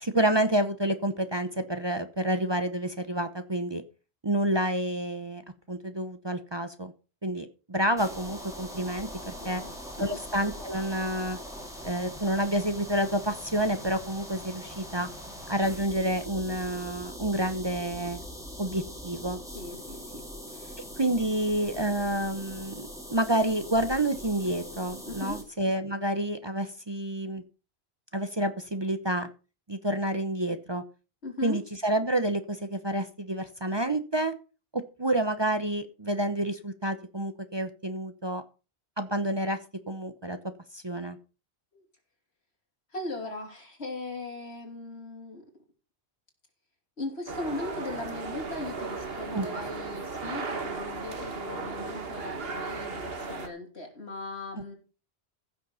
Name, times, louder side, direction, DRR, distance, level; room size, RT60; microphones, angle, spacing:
voice 1, 0.0-3.8 4.2-5.4 5.7-6.9 7.2-9.6 10.0-11.4 11.8-15.1 15.5-18.2 18.6-19.4 21.0-27.4 28.1-29.3 29.7-30.8 31.4-34.3 34.7-38.4 39.0-39.6 39.9-40.4 40.7-41.2 49.3-49.5, right 1 dB, 25° right, 0.9 m, -29 dB
sound 1, 8.0-25.4, equal, 5° right, 3.6 m, -42 dB
voice 2, 9.2-10.2 19.5-20.8 25.0-25.4 31.2-31.6 41.7-41.8 42.9-45.5 47.0-54.8, left 2 dB, 75° left, 3.8 m, -39 dB
sound 2, 47.3-53.5, right 3 dB, 65° right, 1.8 m, -36 dB
15.5 x 6.6 x 5.6 m
omnidirectional pair, 1.1 m